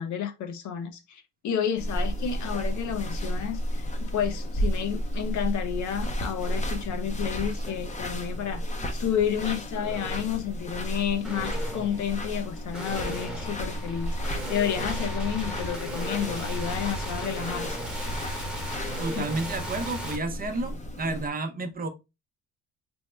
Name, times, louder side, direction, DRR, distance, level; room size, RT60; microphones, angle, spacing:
voice 1, 0.0-8.6 8.9-17.8 19.1-19.2, left 9 dB, 70° left, 0.7 m, -31 dB
sound 1, 1.8-21.3, equal, 25° left, 0.6 m, -33 dB
sound 2, 6.4-6.6 7.0-7.7 8.2-8.7 9.7-10.4 11.2-20.2, equal, ahead, 1.0 m, -37 dB
voice 2, 19.0-21.9, right 2 dB, 30° right, 0.6 m, -31 dB
3.5 x 2.1 x 3.1 m
cardioid pair, 90°, 30 cm